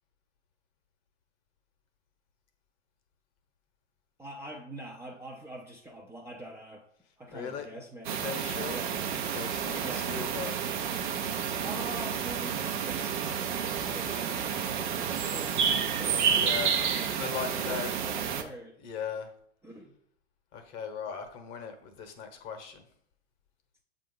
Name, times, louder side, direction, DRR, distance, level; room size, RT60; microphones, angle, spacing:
voice 1, 4.2-6.9 7.2-8.2 8.6-9.0 9.7-10.1 11.6-14.7 15.2-16.9 17.6-18.8 19.6-19.9, right 1 dB, 5° right, -2 dB, 0.6 m, -44 dB
voice 2, 7.3-7.7 8.1-8.8 9.3-10.5 16.3-16.8 17.2-17.9 18.8-19.3 20.5-22.8, left 7 dB, 35° left, 6 dB, 1.0 m, -38 dB
sound 1, 8.1-18.4, right 7 dB, 45° right, 0.7 m, -30 dB
7.4 x 2.5 x 5.3 m, 0.68 s
figure-of-eight pair, 100°, 36 cm